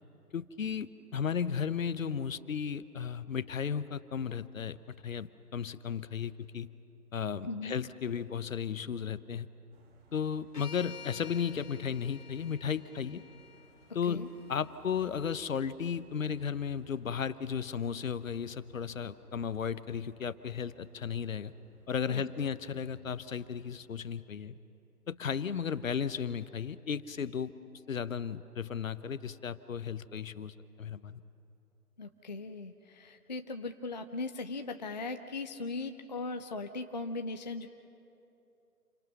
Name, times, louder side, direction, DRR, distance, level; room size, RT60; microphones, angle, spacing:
voice 1, 0.3-4.8 5.0-6.7 7.1-9.5 10.1-13.2 13.9-21.5 21.9-24.5 25.1-27.5 27.9-31.2, left 7 dB, 60° left, 15 dB, 0.9 m, -35 dB
voice 2, 7.4-7.8 14.1-14.3 22.1-22.2 32.0-37.7, left 3 dB, 30° left, 7 dB, 0.5 m, -38 dB
sound 1, 9.7-24.0, right 4 dB, 40° right, 2.5 m, -63 dB
sound 2, 10.5-14.7, left 6 dB, 85° left, 0.9 m, -51 dB
28.5 x 24.5 x 5.9 m, 2.8 s
figure-of-eight pair, 140°, 46 cm